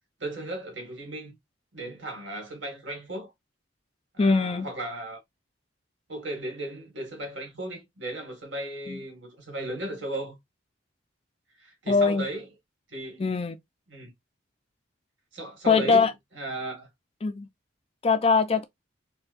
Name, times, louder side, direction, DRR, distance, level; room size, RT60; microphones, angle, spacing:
voice 1, 0.2-1.3 1.7-3.3 4.1-5.2 6.1-10.4 11.6-12.4 12.9-13.2 13.9-14.1 15.3-16.1 16.4-16.9, right 1 dB, 75° right, 1.8 m, -36 dB
voice 2, 4.2-4.7 8.9-9.0 11.9-12.2 13.2-13.6 15.7-16.1 17.2-17.5 18.0-18.6, left 4 dB, 30° left, 0.3 m, -22 dB
4.3 x 2.1 x 2.5 m
head